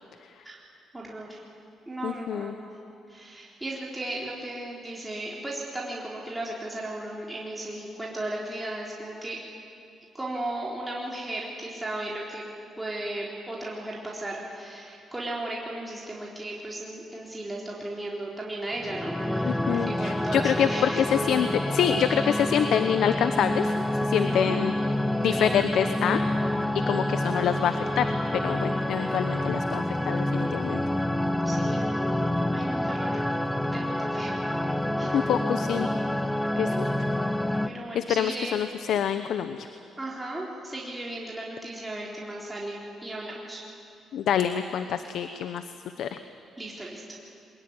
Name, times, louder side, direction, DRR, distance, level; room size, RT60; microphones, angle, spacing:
voice 1, 0.9-1.4 1.9-2.8 3.1-9.4 10.1-12.4 12.8-21.1 24.1-24.6 29.0-29.2 31.5-33.2 33.7-34.4 35.0-35.3 37.6-38.6 40.0-43.6 46.6-47.0, right 1 dB, 15° right, -4 dB, 4.0 m, -36 dB
voice 2, 2.0-2.5 19.4-23.7 24.0-24.7 25.2-26.2 26.7-28.0 28.4-30.8 35.1-35.9 36.6-36.9 37.9-39.7 44.1-45.6 46.0-46.2, left 9 dB, 75° left, 10 dB, 0.9 m, -26 dB
sound 1, 18.7-37.7, left 1 dB, 5° left, 0.9 m, -28 dB
22.0 x 21.0 x 9.7 m, 2.6 s
cardioid pair, 90°, 0 cm